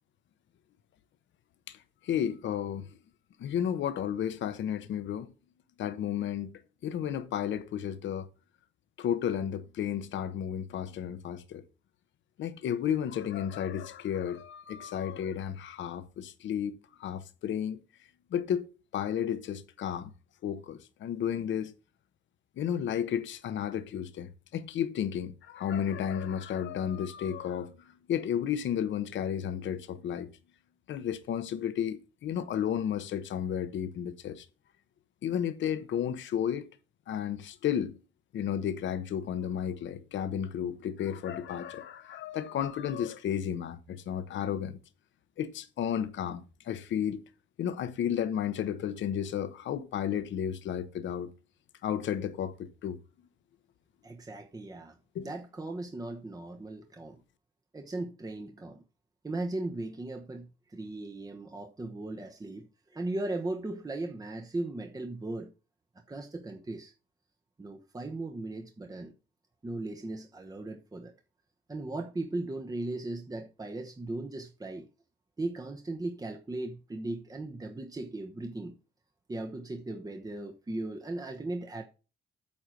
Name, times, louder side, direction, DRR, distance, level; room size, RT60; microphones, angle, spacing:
voice 1, 2.0-2.9 3.4-5.3 5.8-6.5 6.8-8.3 9.0-11.6 12.4-16.7 17.0-17.8 18.3-18.6 18.9-20.1 20.4-21.7 22.6-30.3 30.9-34.4 35.2-36.7 37.1-38.0 38.3-44.8 45.4-47.2 47.6-51.3 51.8-53.0 55.1-55.3, left 9 dB, 70° left, 1.0 m, -32 dB
voice 2, 54.0-57.2 57.7-58.8 59.2-65.5 66.1-66.9 67.6-69.1 69.6-71.1 71.7-74.9 75.4-78.7 79.3-81.8, right 2 dB, 20° right, 1.0 m, -37 dB
8.7 x 4.5 x 6.3 m
cardioid pair, 90°, 20 cm